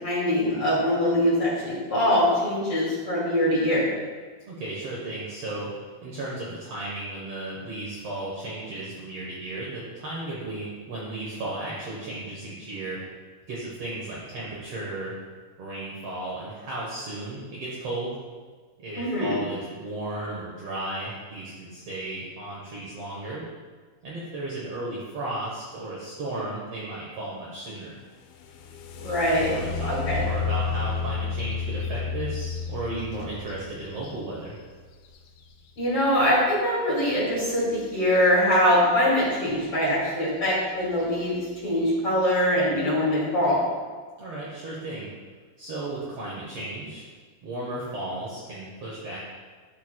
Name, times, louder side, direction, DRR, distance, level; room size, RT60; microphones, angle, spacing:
voice 1, 0.0-3.8 19.0-19.4 29.0-29.5 29.9-30.2 35.8-41.4 41.6-43.6, equal, 40° left, -7 dB, 2.5 m, -23 dB
voice 2, 4.5-5.7 6.0-13.0 13.5-15.1 15.6-18.2 18.8-23.4 24.0-28.0 29.3-34.6 44.2-45.1 45.6-47.1 47.4-49.2, right 2 dB, 90° right, -6 dB, 1.3 m, -34 dB
sound 1, 28.2-36.1 38.1-38.3 38.7-39.3 39.9-40.0 40.5-40.8, left 5 dB, 80° left, 2.3 m, -32 dB
12.5 x 4.4 x 2.2 m, 1.5 s
omnidirectional pair, 4.3 m